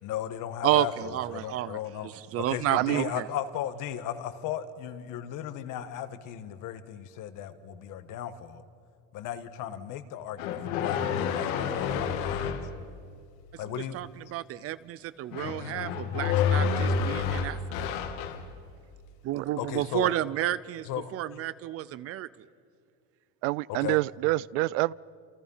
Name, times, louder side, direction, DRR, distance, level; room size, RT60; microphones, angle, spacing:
voice 1, 0.0-2.1 2.4-8.6 9.1-12.6 13.6-14.0 19.6-20.1 20.9-21.2 23.7-24.0, left 10 dB, 50° left, 11 dB, 1.6 m, -36 dB
voice 2, 0.6-1.8 2.0-3.3 13.6-17.6 19.2-22.3, right 14 dB, 40° right, 17 dB, 0.5 m, -31 dB
voice 3, 2.7-3.1 19.3-19.5 23.4-24.9, right 21 dB, 85° right, 23 dB, 0.6 m, -27 dB
sound 1, 10.4-12.7 15.3-18.5, left 6 dB, 80° left, 2.3 m, -29 dB
28.5 x 28.0 x 5.7 m, 2.2 s
cardioid pair, 150°, 39 cm